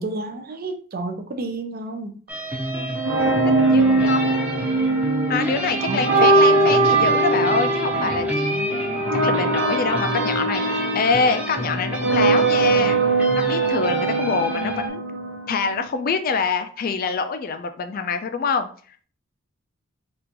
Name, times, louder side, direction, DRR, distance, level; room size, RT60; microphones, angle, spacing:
voice 1, 0.0-2.2 5.8-6.3, right 2 dB, 45° right, 7 dB, 0.5 m, -30 dB
sound 1, 2.3-14.9, equal, 5° right, 0.7 m, -29 dB
sound 2, 2.9-15.9, right 3 dB, 75° right, 1.0 m, -21 dB
voice 2, 3.7-4.6 5.3-13.0 13.3-15.0 15.5-18.7, left 5 dB, 45° left, 8 dB, 0.4 m, -25 dB
3.6 x 2.5 x 2.9 m, 0.42 s
head